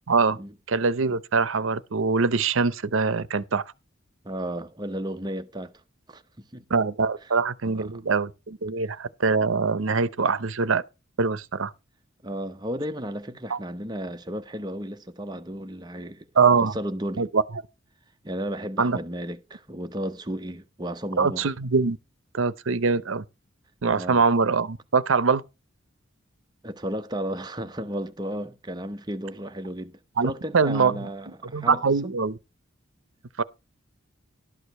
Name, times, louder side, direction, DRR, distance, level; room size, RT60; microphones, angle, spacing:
voice 1, 0.1-0.4 0.7-3.6 6.7-10.8 11.2-11.7 13.5-13.6 16.4-16.7 17.2-17.4 18.8-19.0 21.2-22.0 22.3-23.2 23.8-25.4 30.2-31.1 31.4-32.4 33.4-33.5, right 4 dB, 75° right, 0.7 m, -23 dB
voice 2, 4.2-5.7 6.1-6.6 7.6-8.0 12.2-16.3 16.6-17.3 18.2-21.5 23.9-24.2 26.6-31.8, equal, 20° right, 0.7 m, -34 dB
12.0 x 4.9 x 6.8 m
head